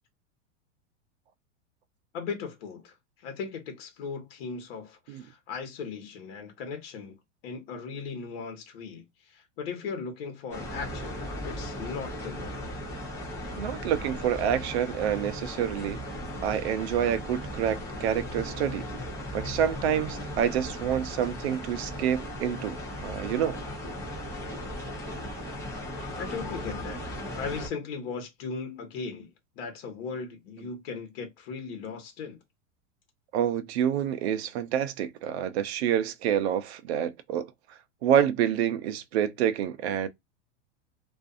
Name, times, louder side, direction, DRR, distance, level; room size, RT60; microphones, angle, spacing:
voice 1, 2.1-7.2 7.4-12.6 26.2-32.4, left 5 dB, 55° left, 1.2 m, -38 dB
sound 1, 10.5-27.7, equal, 10° left, 0.8 m, -37 dB
voice 2, 13.6-16.0 16.4-18.9 19.3-23.6 33.3-37.5 38.0-40.1, right 9 dB, 60° right, 0.6 m, -27 dB
2.5 x 2.5 x 2.4 m
supercardioid pair, 175°, 36 cm